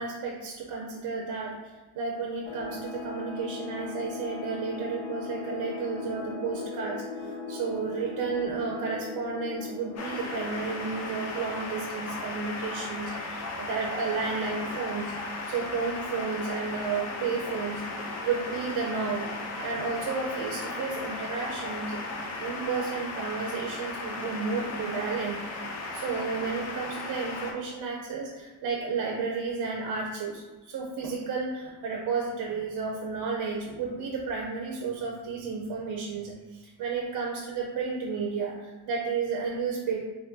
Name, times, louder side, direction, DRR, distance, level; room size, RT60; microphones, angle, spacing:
voice 1, 0.0-1.6 1.9-15.1 15.5-22.0 22.4-25.4 25.9-40.0, right 5 dB, 55° right, -1 dB, 0.5 m, -32 dB
sound 1, 2.5-11.8, left 3 dB, 70° left, 1.1 m, -39 dB
sound 2, 10.0-27.5, left 2 dB, 40° left, 0.4 m, -36 dB
3.5 x 2.2 x 2.6 m, 1.2 s
cardioid pair, 130°, 44 cm